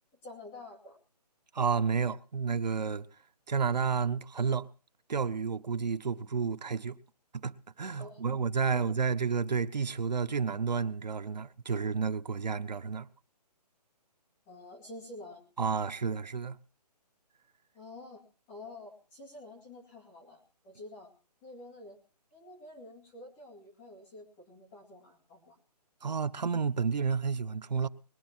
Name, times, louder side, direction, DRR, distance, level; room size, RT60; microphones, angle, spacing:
voice 1, 0.2-1.0 8.0-8.4 8.7-8.8 14.5-15.4 17.7-21.1 21.4-22.0 22.3-25.6, left 2 dB, 10° left, 2.3 m, -49 dB
voice 2, 1.5-3.1 3.5-4.7 5.1-7.0 7.3-13.1 15.6-16.6 26.0-27.9, right 5 dB, 80° right, 1.1 m, -31 dB
21.0 x 10.5 x 4.5 m
hypercardioid pair, 180°, 21 cm